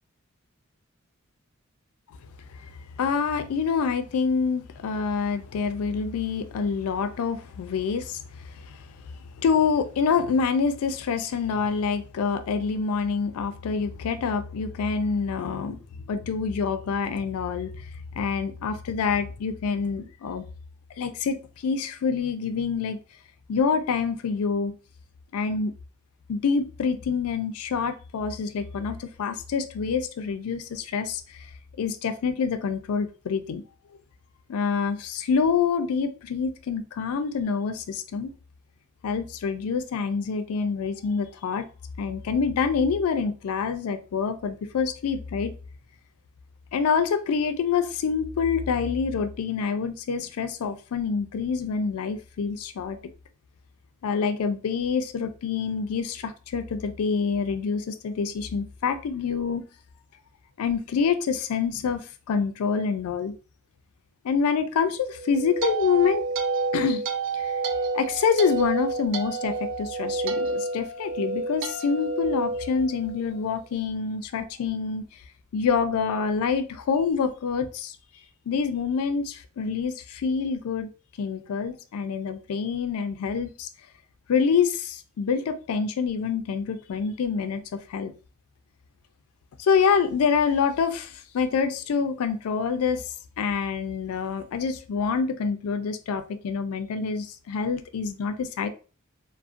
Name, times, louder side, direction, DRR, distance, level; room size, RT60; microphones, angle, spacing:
voice 1, 3.0-8.2 8.6-8.8 9.4-15.8 16.1-17.7 18.2-20.5 21.0-23.0 23.5-24.7 25.3-25.7 26.3-31.4 31.8-33.6 34.5-38.3 39.0-41.7 42.0-45.5 46.7-53.0 54.0-59.7 60.6-63.3 64.2-66.2 66.7-67.0 67.3-67.6 67.9-75.0 75.5-78.0 78.5-80.9 81.2-83.7 84.3-87.6 87.9-88.1 89.6-93.1 93.4-98.7, left 5 dB, 80° left, 0.4 m, -26 dB
sound 1, 65.1-73.4, right 3 dB, 60° right, 0.3 m, -29 dB
2.4 x 2.1 x 2.5 m
head